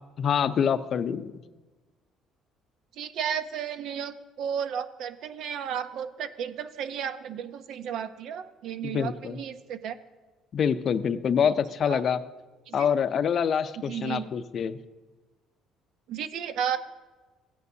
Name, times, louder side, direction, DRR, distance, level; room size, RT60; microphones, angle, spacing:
voice 1, 0.2-1.3 8.8-9.4 10.5-12.2 12.7-14.8, left 7 dB, 45° left, 12 dB, 0.5 m, -26 dB
voice 2, 3.0-10.0 11.8-12.0 12.7-12.8 13.9-14.3 16.1-16.8, right 8 dB, 65° right, 11 dB, 0.7 m, -33 dB
16.0 x 9.3 x 2.7 m, 1.2 s
cardioid pair, 115°, 0 cm